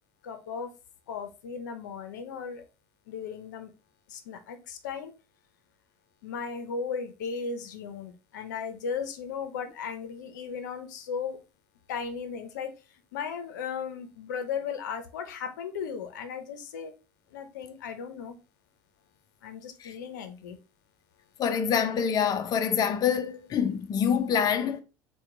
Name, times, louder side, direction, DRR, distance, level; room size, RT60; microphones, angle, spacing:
voice 1, 0.2-0.7 1.1-2.6 3.1-3.7 4.1-5.1 6.2-11.4 11.9-12.7 13.1-16.9 17.3-18.4 19.4-20.6, left 6 dB, 85° left, 0.6 m, -36 dB
voice 2, 21.4-24.8, left 7 dB, 40° left, 0.5 m, -26 dB
4.4 x 2.2 x 3.7 m
hypercardioid pair, 75°, 10 cm